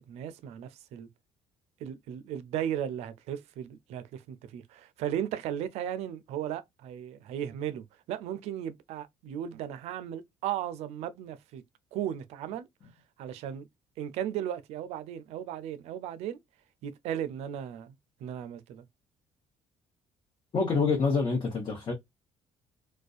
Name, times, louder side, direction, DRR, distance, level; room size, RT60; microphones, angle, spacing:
voice 1, 0.1-1.1 1.8-11.6 11.9-12.6 13.2-13.6 14.0-16.4 16.8-17.9 18.2-18.8, right 10 dB, 75° right, 0.4 m, -36 dB
voice 2, 20.5-21.9, left 4 dB, 45° left, 0.9 m, -26 dB
2.4 x 2.2 x 2.3 m
supercardioid pair, 70°, 11 cm